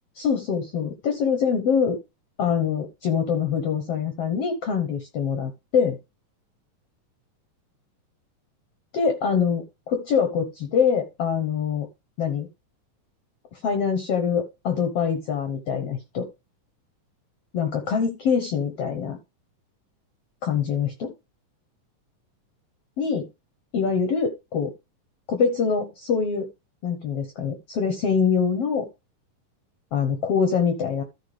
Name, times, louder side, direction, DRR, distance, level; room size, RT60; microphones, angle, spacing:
voice 1, 0.2-1.9 2.4-6.0 8.9-11.9 12.2-12.5 13.6-16.3 17.5-19.2 20.4-21.1 23.0-23.3 23.7-24.7 25.3-26.5 26.8-28.9 29.9-31.0, left 6 dB, 65° left, 6 dB, 1.6 m, -24 dB
14.0 x 4.9 x 3.3 m, 0.25 s
omnidirectional pair, 3.9 m